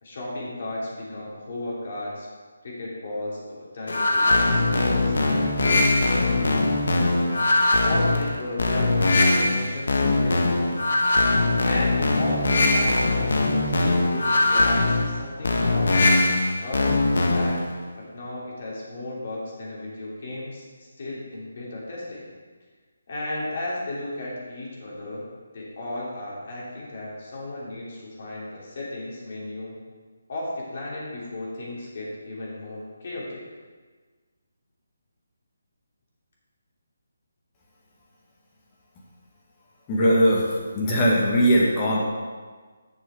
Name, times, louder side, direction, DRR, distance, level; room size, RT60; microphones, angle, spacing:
voice 1, 0.0-2.3 2.6-6.6 7.8-10.8 11.6-16.1 16.6-17.6 17.9-20.7 21.0-22.2 23.1-25.2 25.5-29.8 30.3-33.4, left 1 dB, 50° left, -5 dB, 3.0 m, -34 dB
sound 1, 3.9-17.7, left 2 dB, 70° left, 1.3 m, -21 dB
voice 2, 39.9-40.4 40.7-42.0, equal, 20° left, -5 dB, 1.9 m, -19 dB
7.6 x 6.3 x 5.6 m, 1.4 s
figure-of-eight pair, 155°, 0 cm